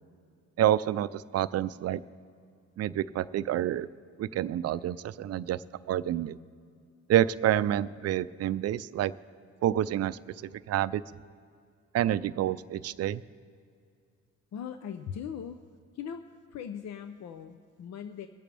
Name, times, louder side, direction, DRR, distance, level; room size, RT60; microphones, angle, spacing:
voice 1, 0.6-2.0 2.8-3.9 4.2-5.6 5.9-6.4 7.1-9.1 9.6-10.2 10.7-11.0 11.9-13.2, right 12 dB, 55° right, 16 dB, 0.4 m, -28 dB
voice 2, 14.5-15.6 15.9-16.2 16.5-18.3, left 8 dB, 60° left, 8 dB, 0.6 m, -39 dB
24.0 x 8.6 x 3.4 m, 2.3 s
cardioid pair, 90°, 30 cm